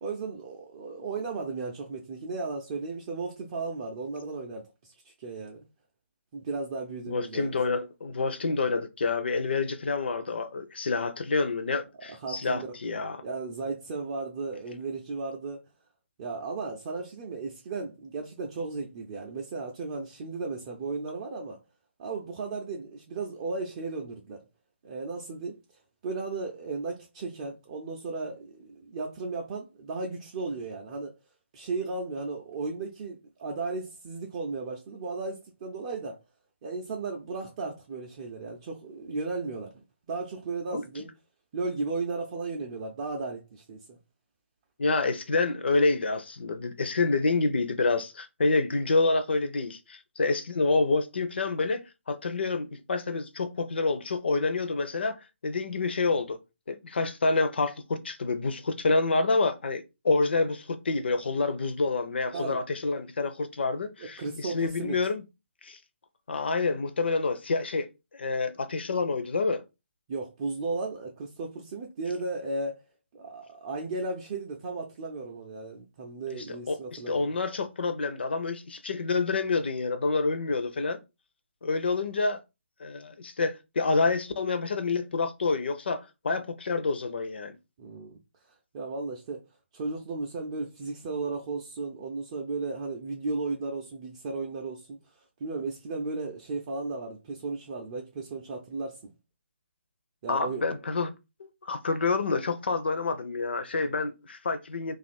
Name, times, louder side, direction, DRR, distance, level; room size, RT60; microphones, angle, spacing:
voice 1, 0.0-5.6 6.3-7.6 12.1-12.8 13.2-15.6 16.2-21.6 22.0-24.4 24.8-25.6 26.0-31.1 31.5-36.2 36.6-41.1 41.5-44.0 62.3-62.6 64.0-65.0 70.1-72.8 73.1-77.3 87.8-88.2 88.7-89.4 89.7-95.0 95.4-99.1 100.2-100.7 103.8-103.9, right 3 dB, 25° right, 0.5 m, -35 dB
voice 2, 7.1-13.2 40.7-40.8 44.8-51.8 52.1-56.4 56.7-65.2 65.6-65.8 66.3-69.6 76.3-81.0 81.6-82.4 82.8-87.6 100.3-101.1 101.4-104.9, left 3 dB, 55° left, 0.6 m, -28 dB
2.8 x 2.5 x 4.1 m
figure-of-eight pair, 145°, 7 cm